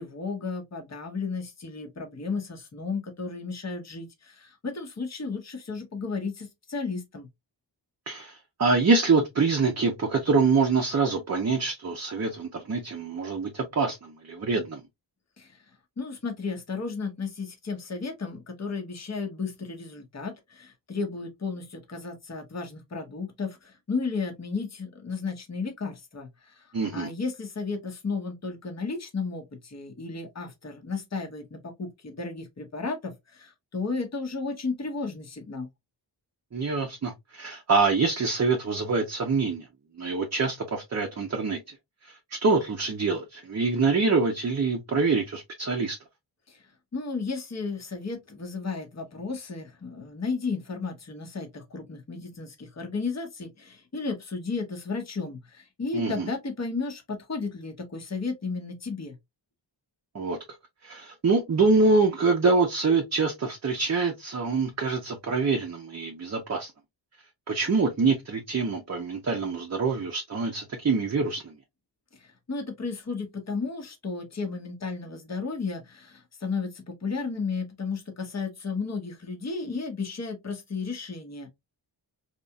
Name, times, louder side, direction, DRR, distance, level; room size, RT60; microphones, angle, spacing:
voice 1, 0.0-7.3 15.4-15.6 16.0-26.7 26.9-35.7 46.5-46.6 46.9-59.2 72.2-81.5, left 4 dB, 35° left, 1.0 m, -33 dB
voice 2, 8.1-14.8 26.7-27.1 36.5-39.7 39.9-41.8 42.0-46.0 55.9-56.3 60.1-60.4 60.8-66.7 67.5-71.5, right 4 dB, 35° right, 0.6 m, -25 dB
3.9 x 2.9 x 2.3 m
wide cardioid pair, 100°, 44 cm